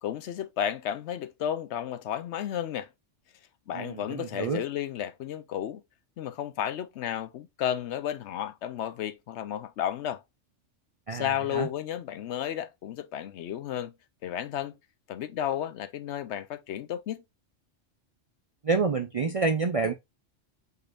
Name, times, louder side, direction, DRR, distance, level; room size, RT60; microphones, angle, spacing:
voice 1, 0.0-2.9 3.7-5.8 6.2-10.2 11.1-13.9 14.2-14.8 15.1-17.2, left 10 dB, 70° left, 0.8 m, -33 dB
voice 2, 3.7-4.6 11.1-11.7 18.6-19.9, right 4 dB, 50° right, 0.4 m, -28 dB
5.2 x 4.0 x 2.4 m
omnidirectional pair, 1.3 m